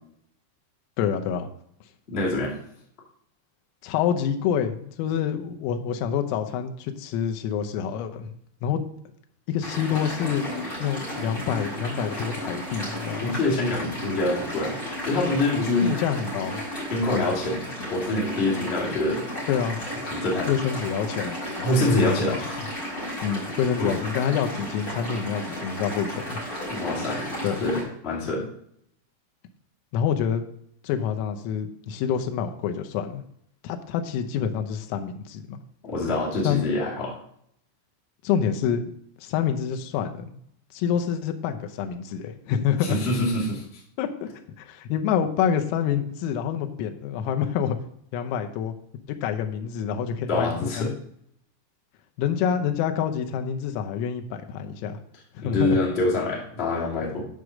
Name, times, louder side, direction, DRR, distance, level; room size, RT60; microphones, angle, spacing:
voice 1, 1.0-1.5 3.8-8.4 8.6-8.8 9.5-13.4 15.8-16.6 17.1-17.3 19.5-19.8 20.5-22.4 23.2-26.4 27.4-27.6 29.9-30.4 30.8-33.2 33.6-35.6 36.5-36.6 38.2-38.9 39.2-40.4 40.7-43.0 44.0-44.1 44.6-47.8 48.1-48.7 49.1-50.9 52.2-55.0 55.4-55.8, left 8 dB, 85° left, 6 dB, 3.5 m, -27 dB
voice 2, 2.1-2.5 13.2-15.9 16.9-19.3 20.1-20.5 21.6-22.6 23.8-24.0 26.7-27.3 27.6-28.5 35.8-37.2 42.8-43.8 50.3-50.9 55.4-57.2, left 2 dB, 40° left, -5 dB, 0.8 m, -25 dB
sound 1, 9.6-27.8, equal, 20° left, 3.2 m, -34 dB
9.6 x 4.8 x 6.3 m, 0.69 s
omnidirectional pair, 5.9 m